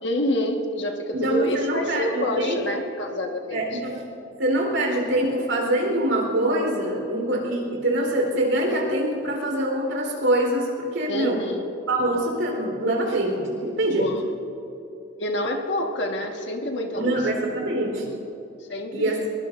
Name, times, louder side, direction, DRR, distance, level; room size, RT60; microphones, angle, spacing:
voice 1, 0.0-3.6 11.1-11.6 13.9-14.2 15.2-17.2 18.7-19.2, left 1 dB, 70° left, 2 dB, 1.6 m, -27 dB
voice 2, 1.1-2.6 3.5-4.0 4.4-11.4 11.9-14.1 17.0-18.1 18.9-19.3, right 1 dB, 85° right, 0 dB, 4.1 m, -24 dB
22.5 x 22.5 x 2.6 m, 2.9 s
head